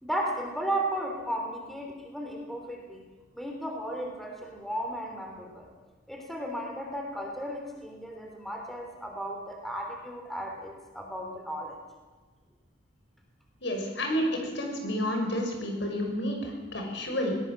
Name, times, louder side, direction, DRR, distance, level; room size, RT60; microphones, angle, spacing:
voice 1, 0.0-3.0 3.3-5.7 6.1-11.8, right 1 dB, ahead, 1 dB, 3.4 m, -35 dB
voice 2, 13.6-17.4, equal, 70° left, 2 dB, 6.0 m, -30 dB
21.5 x 19.5 x 7.5 m, 1.3 s
head